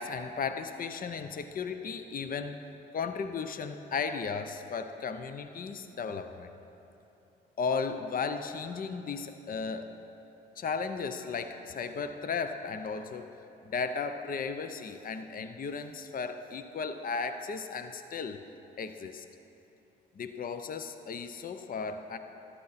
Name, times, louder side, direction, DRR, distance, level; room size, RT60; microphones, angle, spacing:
voice 1, 0.0-2.7 2.9-6.5 7.6-10.0 10.6-13.4 13.6-18.4 18.8-19.2 20.2-22.2, left 5 dB, 50° left, 9 dB, 0.7 m, -35 dB
14.0 x 12.0 x 4.2 m, 3.0 s
cardioid pair, 70°, 19 cm